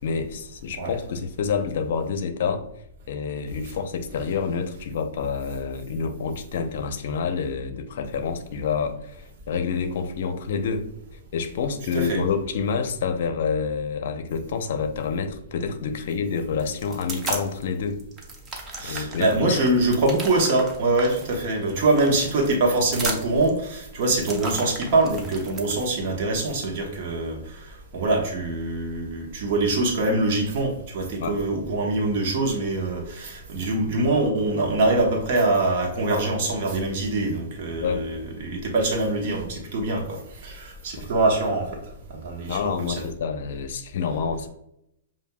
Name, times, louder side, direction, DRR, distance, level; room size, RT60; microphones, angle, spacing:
voice 1, 0.0-2.7 3.1-10.9 11.3-18.0 18.8-19.6 31.2-31.4 37.8-38.0 40.9-41.1 42.5-44.5, left 6 dB, 65° left, 9 dB, 0.6 m, -28 dB
sound 1, 16.6-17.6 18.0-25.8, right 3 dB, 20° right, 0.7 m, -35 dB
voice 2, 18.8-41.7 42.1-43.0, right 2 dB, 50° right, 1 dB, 1.1 m, -24 dB
7.0 x 2.6 x 2.3 m, 0.79 s
hypercardioid pair, 150°, 0 cm